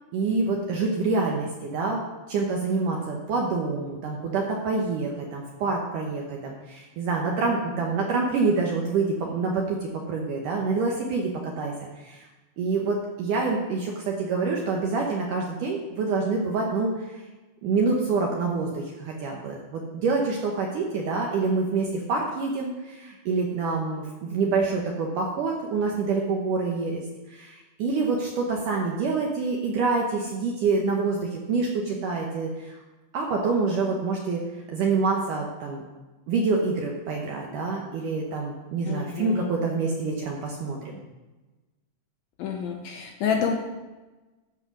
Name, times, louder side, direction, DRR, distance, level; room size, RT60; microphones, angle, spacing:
voice 1, 0.1-2.0 2.3-12.2 12.6-17.2 17.6-32.8 33.1-34.4 34.7-35.8 36.3-41.0, right 4 dB, 75° right, 0 dB, 1.9 m, -27 dB
voice 2, 38.9-39.5 42.4-43.5, left 7 dB, 75° left, 2 dB, 2.2 m, -28 dB
13.5 x 4.7 x 6.0 m, 1.2 s
omnidirectional pair, 5.0 m